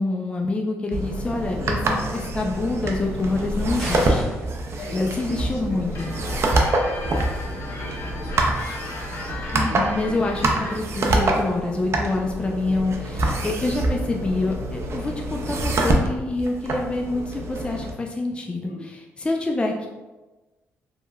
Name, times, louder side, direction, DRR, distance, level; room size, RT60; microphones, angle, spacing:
voice 1, 0.0-4.3 4.9-6.1 9.5-18.7 19.2-19.9, left 2 dB, 20° left, 1 dB, 0.3 m, -26 dB
sound 1, 0.9-17.9, right 2 dB, 50° right, 0.4 m, -26 dB
sound 2, 3.8-4.5, equal, ahead, 1.5 m, -33 dB
voice 2, 4.8-8.9 9.6-10.8 18.6-18.8, left 1 dB, 75° left, -4 dB, 0.9 m, -42 dB
sound 3, 5.9-10.8, left 2 dB, 55° left, 0.6 m, -37 dB
3.0 x 2.1 x 2.2 m, 1.1 s
supercardioid pair, 65°, 6 cm